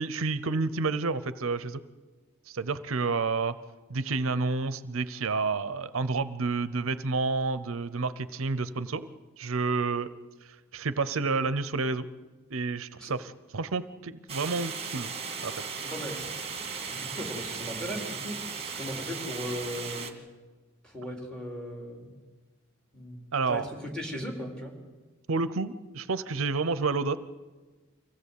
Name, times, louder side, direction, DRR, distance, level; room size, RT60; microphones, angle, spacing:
voice 1, 0.0-1.8 2.5-3.5 3.9-9.1 9.4-10.1 10.4-12.1 12.5-15.1 15.4-15.7 23.3-23.7 25.3-27.2, right 4 dB, 70° right, 14 dB, 0.7 m, -30 dB
sound 1, 14.3-20.1, right 5 dB, 30° right, 1.9 m, -37 dB
voice 2, 15.8-16.2 16.9-20.2 20.8-22.1 22.9-23.2 23.5-24.7, equal, 5° left, 1 dB, 3.9 m, -37 dB
24.5 x 16.5 x 8.4 m, 1.3 s
head